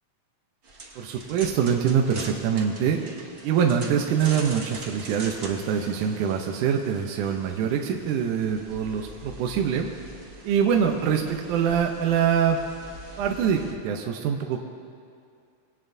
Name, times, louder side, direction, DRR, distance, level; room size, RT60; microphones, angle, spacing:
sound 1, 0.6-13.7, right 2 dB, 50° right, 1.0 m, -43 dB
voice 1, 1.0-3.0 3.4-9.9 10.4-12.6 13.2-14.6, right 7 dB, 75° right, 2 dB, 2.0 m, -24 dB
24.0 x 17.5 x 2.7 m, 2.4 s
omnidirectional pair, 4.1 m